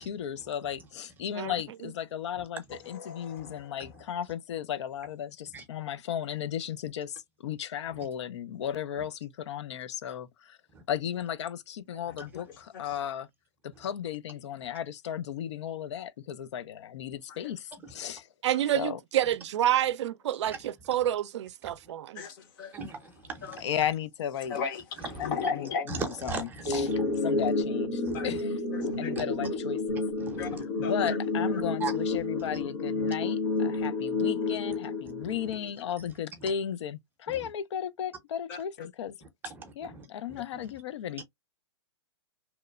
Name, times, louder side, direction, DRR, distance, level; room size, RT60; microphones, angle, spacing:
voice 1, 0.0-10.6 10.9-13.3 13.6-18.3 18.7-19.0 23.6-24.6 25.2-26.9 27.2-28.5 29.0-30.0 30.8-39.2 39.8-41.2, left 9 dB, 75° left, 0.4 m, -35 dB
voice 2, 2.7-3.7 12.3-12.4 12.7-12.8 17.3-17.4 18.5-18.6 22.2-22.7 23.4-23.6 24.5-25.9 28.1-28.3 28.7-29.1 30.4-30.5 30.8-31.2 31.5-31.6 38.5-38.9, left 5 dB, 50° left, 0.8 m, -36 dB
voice 3, 18.4-22.2, right 12 dB, 75° right, 0.4 m, -28 dB
voice 4, 22.7-23.7 25.0-25.4 25.9-27.2 28.0-28.4 28.8-29.2 30.2-30.6 31.8-31.9 33.0-33.1 33.8-33.9 35.2-35.4 36.4-36.5 37.3-37.5 39.5-40.4, right 4 dB, 15° right, 0.6 m, -39 dB
sound 1, 26.7-35.7, left 3 dB, 90° left, 0.9 m, -30 dB
2.9 x 2.0 x 2.3 m
hypercardioid pair, 145°, 15 cm